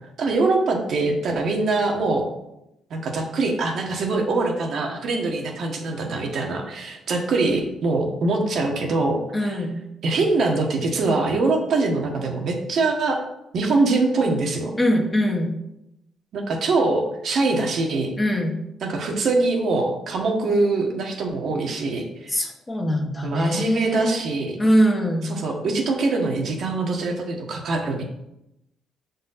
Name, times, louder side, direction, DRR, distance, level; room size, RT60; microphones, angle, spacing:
voice 1, 0.2-2.3 2.9-9.6 10.0-13.2 13.5-14.7 16.3-18.1 18.8-22.4 23.2-24.6 25.2-28.1, right 3 dB, 65° right, 1 dB, 1.3 m, -23 dB
voice 2, 9.3-9.8 14.8-15.5 18.2-18.5 22.3-24.2 24.6-25.3, equal, 20° left, 2 dB, 1.1 m, -22 dB
6.8 x 4.1 x 4.1 m, 0.85 s
cardioid pair, 90°, 0 cm